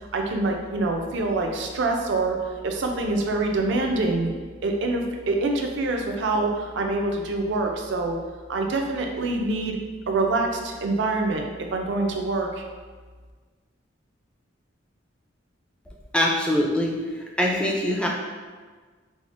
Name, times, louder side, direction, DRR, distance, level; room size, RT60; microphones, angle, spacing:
voice 1, 0.1-2.4 2.6-4.3 4.6-8.2 8.5-9.8 10.1-12.6, right 2 dB, 65° right, 2 dB, 0.4 m, -25 dB
voice 2, 16.1-17.0 17.4-18.1, left 1 dB, 5° left, -2 dB, 0.3 m, -22 dB
4.8 x 2.0 x 2.5 m, 1.4 s
head